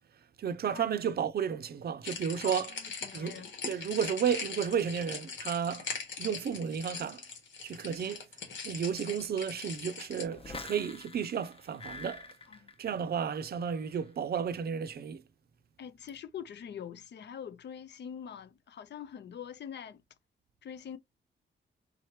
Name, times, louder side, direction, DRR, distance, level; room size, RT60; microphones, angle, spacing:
voice 1, 0.4-2.7 3.1-5.9 6.2-7.2 7.6-8.2 8.6-12.3 12.8-15.2, right 7 dB, 55° right, 0.5 m, -33 dB
sound 1, 2.0-10.2, left 5 dB, 90° left, 1.7 m, -41 dB
voice 2, 2.4-3.5 12.5-12.7 15.8-20.0 20.6-21.0, left 8 dB, 65° left, 0.6 m, -44 dB
sound 2, 10.3-13.4 13.7-14.1, left 3 dB, 30° left, 0.8 m, -46 dB
3.9 x 3.2 x 2.9 m
wide cardioid pair, 120°, 19 cm